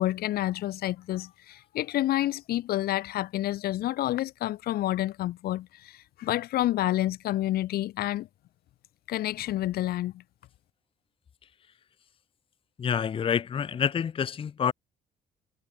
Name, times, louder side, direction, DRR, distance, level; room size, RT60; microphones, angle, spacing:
voice 1, 0.0-8.3 9.1-10.2, left 14 dB, 65° left, 0.8 m, -29 dB
voice 2, 12.8-14.7, left 7 dB, 30° left, 0.7 m, -27 dB
cardioid pair, 110°, 17 cm